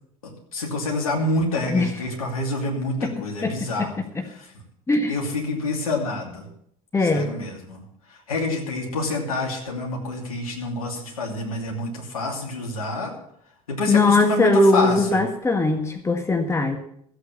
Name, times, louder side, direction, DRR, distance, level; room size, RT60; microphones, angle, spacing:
voice 1, 0.2-4.0 4.2-4.5 5.1-6.5 7.0-7.8 8.1-13.1 13.7-15.2, left 2 dB, 75° left, 0 dB, 2.8 m, -27 dB
voice 2, 3.4-4.2 4.9-5.1 6.9-7.3 13.9-16.8, left 2 dB, 15° left, 6 dB, 1.6 m, -20 dB
14.0 x 8.3 x 7.0 m, 0.69 s
figure-of-eight pair, 65°, 18 cm